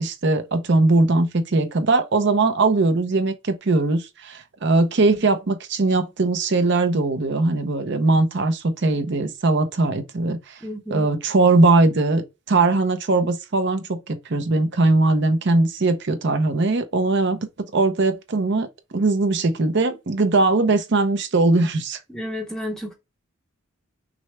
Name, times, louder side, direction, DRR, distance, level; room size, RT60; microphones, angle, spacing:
voice 1, 0.0-10.6 10.9-17.4 17.7-18.7 18.9-22.0, right 2 dB, 55° right, 0.7 m, -20 dB
voice 2, 10.6-11.1 22.1-22.9, equal, ahead, 0.7 m, -31 dB
6.1 x 2.2 x 3.1 m
head